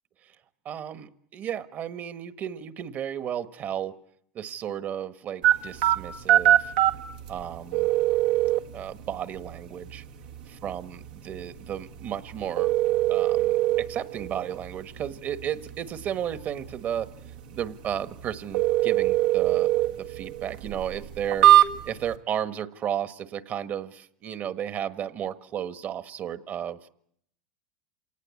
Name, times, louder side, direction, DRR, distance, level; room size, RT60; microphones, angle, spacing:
voice 1, 0.6-3.9 4.3-6.7 7.3-7.9 8.7-10.0 10.5-12.7 13.1-17.1 17.5-21.5 21.8-26.8, right 9 dB, 40° right, 12 dB, 1.4 m, -33 dB
sound 1, 5.4-22.1, right 13 dB, 80° right, 1.7 m, -25 dB
27.0 x 18.5 x 8.4 m, 0.70 s
supercardioid pair, 120°, 5 cm